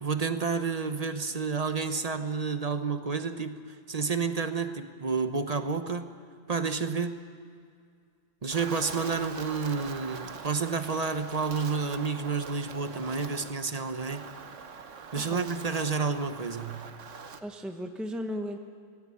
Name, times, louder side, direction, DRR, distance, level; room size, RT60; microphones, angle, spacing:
voice 1, 0.0-6.2 6.5-7.2 8.4-14.3 15.1-16.9, right 5 dB, 35° right, 9 dB, 0.9 m, -30 dB
Wind, 8.5-17.4, right 6 dB, 80° right, 1.5 m, -43 dB
voice 2, 17.4-18.6, equal, ahead, 4 dB, 1.0 m, -35 dB
18.0 x 16.5 x 9.7 m, 2.2 s
omnidirectional pair, 1.3 m